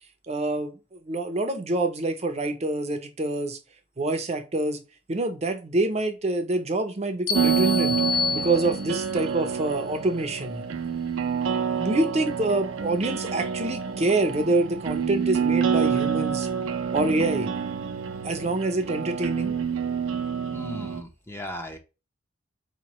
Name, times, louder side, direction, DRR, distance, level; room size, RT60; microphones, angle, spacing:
voice 1, 0.3-3.6 4.0-4.8 5.1-8.0 8.3-10.6 11.7-16.5 16.9-17.5 18.2-19.5, right 2 dB, 35° right, 0.6 m, -26 dB
sound 1, 7.3-9.2, left 6 dB, 85° left, 0.6 m, -28 dB
sound 2, 7.3-21.0, right 7 dB, 80° right, 0.6 m, -28 dB
voice 2, 20.5-21.8, left 1 dB, 10° left, 0.6 m, -37 dB
4.5 x 3.0 x 2.9 m
head